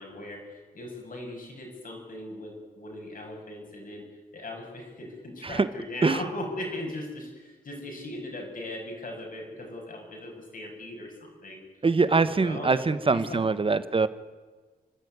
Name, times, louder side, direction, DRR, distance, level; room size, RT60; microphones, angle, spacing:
voice 1, 0.0-4.0 4.3-11.6 12.1-13.7, left 1 dB, 60° left, 1 dB, 7.4 m, -39 dB
voice 2, 11.8-14.1, right 4 dB, 35° right, 14 dB, 1.2 m, -23 dB
29.5 x 13.0 x 9.6 m, 1.3 s
wide cardioid pair, 115°, 16 cm